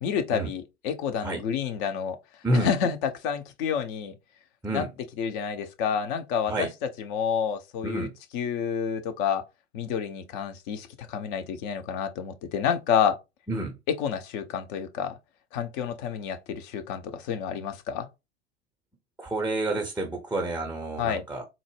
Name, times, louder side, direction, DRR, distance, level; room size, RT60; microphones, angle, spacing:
voice 1, 0.0-2.2 2.5-3.0 3.2-4.1 4.7-4.8 5.2-6.7 7.1-8.1 8.3-9.4 9.7-13.2 14.0-15.1 15.5-18.1 21.0-21.2, left 7 dB, 50° left, 0.6 m, -29 dB
voice 2, 7.8-8.1 13.5-13.8 19.2-21.4, right 1 dB, 5° right, 0.5 m, -29 dB
3.8 x 2.0 x 3.1 m
figure-of-eight pair, 80°, 33 cm